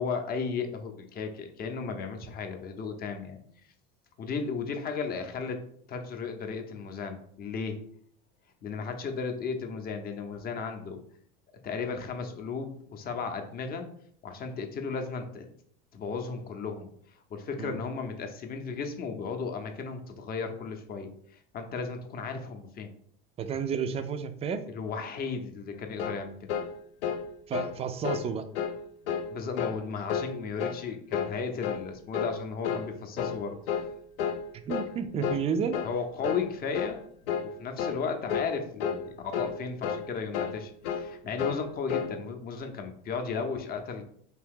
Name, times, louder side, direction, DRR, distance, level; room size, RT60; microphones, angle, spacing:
voice 1, 0.0-3.4 4.2-5.6 5.9-7.8 8.6-11.0 11.6-13.9 14.2-15.5 15.9-16.9 17.3-22.9 24.7-26.4 29.3-33.6 35.8-37.1 37.4-44.0, left 5 dB, 30° left, 6 dB, 0.7 m, -35 dB
voice 2, 23.4-24.6 27.5-28.5 34.7-35.8, right 6 dB, 20° right, 9 dB, 0.4 m, -31 dB
sound 1, 26.0-26.2 26.5-26.7 27.0-27.2 27.5-27.8 28.0-28.3 28.6-28.8 29.1-29.3 29.6-29.8 30.1-30.3 30.6-30.8 31.1-31.4 31.6-31.9 32.1-32.4 32.6-32.9 33.2-33.4 33.7-33.9 34.2-34.4 34.7-34.9 35.2-35.4 35.7-35.9 36.2-36.5 36.7-37.0 37.3-37.5 37.8-38.0 38.3-38.5 38.8-39.0 39.3-39.6 39.8-40.1 40.3-40.6 40.8-41.1 41.4-41.6 41.9-42.1, left 7 dB, 75° left, 0.5 m, -31 dB
2.9 x 2.7 x 3.6 m, 0.63 s
hypercardioid pair, 100°, 29 cm